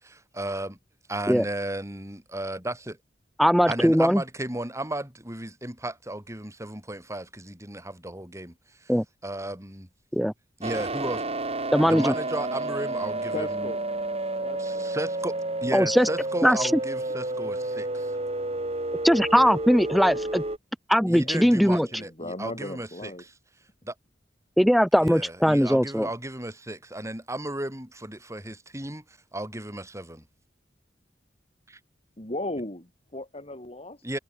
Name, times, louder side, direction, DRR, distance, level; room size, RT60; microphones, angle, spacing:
voice 1, 0.0-0.8 1.1-3.0 3.7-8.5 8.8-8.9 9.2-9.9 10.6-11.2 11.8-13.7 14.6-18.2 21.1-23.1 23.8-23.9 25.0-30.2 31.7-31.8 34.0-34.2, right 1 dB, 15° right, 7.2 m, -34 dB
voice 2, 3.4-4.2 8.9-9.0 10.1-10.3 11.7-12.1 15.7-16.1 16.4-16.7 19.0-20.4 20.9-21.9 24.6-26.1, equal, ahead, 1.7 m, -20 dB
sound 1, 10.6-20.6, right 2 dB, 35° right, 4.2 m, -30 dB
voice 3, 13.3-13.8 14.4-14.9 19.4-19.5 19.8-20.3 20.9-23.2 32.2-34.0, left 1 dB, 35° left, 4.6 m, -37 dB
head